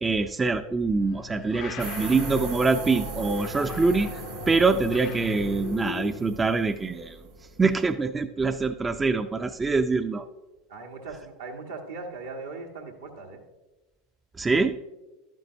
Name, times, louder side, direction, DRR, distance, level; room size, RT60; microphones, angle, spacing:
voice 1, 0.0-4.2 4.5-7.2 7.6-10.2 14.4-14.8, right 4 dB, 20° right, 9 dB, 0.4 m, -24 dB
sound 1, 0.8-6.4, left 10 dB, 55° left, 0.6 m, -39 dB
sound 2, 1.8-7.9, right 5 dB, 70° right, 1.5 m, -38 dB
voice 2, 10.7-13.4, right 3 dB, 85° right, -1 dB, 1.3 m, -39 dB
11.5 x 9.1 x 2.6 m, 1.1 s
hypercardioid pair, 85°, 0 cm